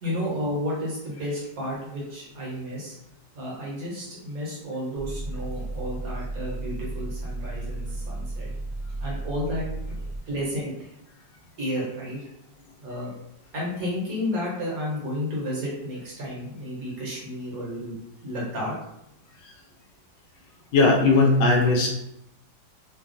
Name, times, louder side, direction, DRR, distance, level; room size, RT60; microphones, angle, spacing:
voice 1, 0.0-3.0 3.3-8.5 9.0-10.0 10.3-10.9 11.6-12.2 12.8-13.1 13.5-17.9 18.2-18.7, left 1 dB, 60° right, -5 dB, 1.2 m, -32 dB
sound 1, 4.9-10.2, right 2 dB, 85° right, 0.3 m, -33 dB
voice 2, 20.7-21.9, left 3 dB, 80° left, 0 dB, 1.3 m, -18 dB
3.2 x 2.2 x 2.5 m, 0.80 s
omnidirectional pair, 2.0 m